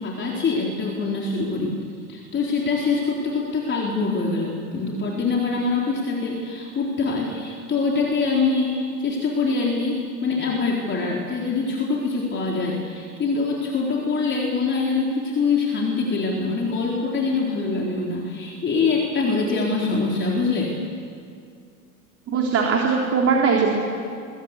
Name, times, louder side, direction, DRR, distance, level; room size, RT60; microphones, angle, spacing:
voice 1, 0.0-1.8 2.1-20.8, left 4 dB, 25° left, -2 dB, 4.0 m, -24 dB
voice 2, 22.3-23.8, right 5 dB, 30° right, 0 dB, 3.7 m, -20 dB
22.5 x 21.0 x 8.1 m, 2.3 s
figure-of-eight pair, 90°, 45 cm